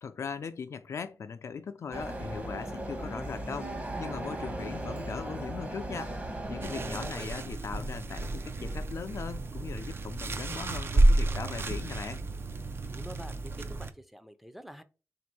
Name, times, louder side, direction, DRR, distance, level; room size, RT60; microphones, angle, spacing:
voice 1, 0.0-6.2 6.5-12.2, left 6 dB, 75° left, 0.4 m, -39 dB
sound 1, 1.9-7.1, right 1 dB, 30° right, 1.1 m, -37 dB
sound 2, 6.6-13.9, right 2 dB, 55° right, 0.5 m, -30 dB
voice 2, 6.8-7.3 12.9-14.8, equal, 5° right, 0.5 m, -46 dB
3.7 x 2.6 x 4.6 m
wide cardioid pair, 105°, 5 cm